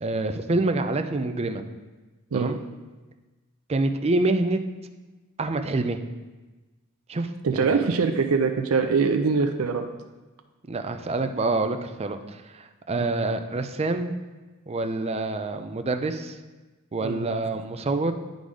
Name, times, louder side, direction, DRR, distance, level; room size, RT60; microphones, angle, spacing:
voice 1, 0.0-1.7 2.3-2.6 3.7-4.6 5.4-6.0 7.1-7.9 10.7-14.1 14.7-16.4 16.9-18.1, right 2 dB, 30° right, 7 dB, 0.5 m, -27 dB
voice 2, 7.4-9.8 13.0-13.1 17.0-17.2, right 5 dB, 85° right, 6 dB, 0.5 m, -23 dB
9.9 x 3.9 x 4.8 m, 1.2 s
head